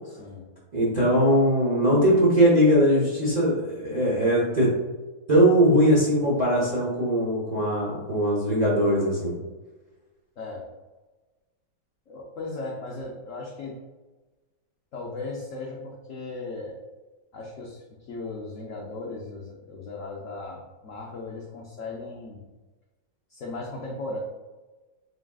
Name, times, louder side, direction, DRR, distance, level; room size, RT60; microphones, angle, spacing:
voice 1, 0.0-0.5 10.4-10.7 12.1-13.8 14.9-16.8 17.3-22.4 23.3-24.2, left 3 dB, 75° left, -2 dB, 0.7 m, -37 dB
voice 2, 0.7-4.7 5.3-9.4, equal, 40° right, -7 dB, 0.6 m, -20 dB
4.0 x 3.6 x 2.3 m, 1.2 s
omnidirectional pair, 2.0 m